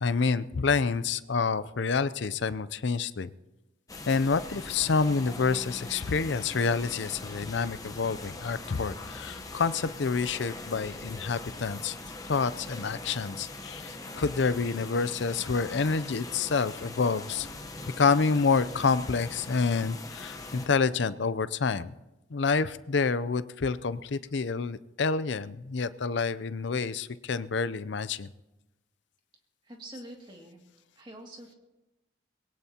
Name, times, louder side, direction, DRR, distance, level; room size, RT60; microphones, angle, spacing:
voice 1, 0.0-3.3 4.1-11.9 12.3-17.5 18.0-21.9 22.3-28.3, left 4 dB, 70° left, 14 dB, 0.5 m, -28 dB
sound 1, 3.9-20.7, left 2 dB, 15° left, 1.0 m, -42 dB
voice 2, 29.6-30.6 31.0-31.5, right 1 dB, 25° right, 1 dB, 2.3 m, -46 dB
22.0 x 18.0 x 2.9 m, 1.0 s
head